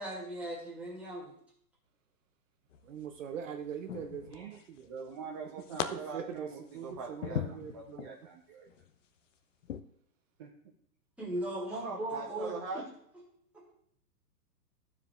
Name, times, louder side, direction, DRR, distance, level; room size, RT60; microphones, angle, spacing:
voice 1, 0.0-1.3 11.2-12.8 13.5-13.7, right 1 dB, 5° right, -5 dB, 2.1 m, -38 dB
sound 1, 2.7-3.2 3.9-4.8 5.1-5.9 6.3-8.2 8.7-8.9 9.6-9.8, left 10 dB, 50° left, 0.6 m, -39 dB
voice 2, 2.8-4.9 5.8-8.2, right 8 dB, 50° right, 5 dB, 0.8 m, -42 dB
voice 3, 4.9-8.7 10.4-10.5 11.7-12.8, right 4 dB, 20° right, -2 dB, 0.4 m, -43 dB
12.5 x 4.8 x 3.4 m, 0.68 s
figure-of-eight pair, 120°, 49 cm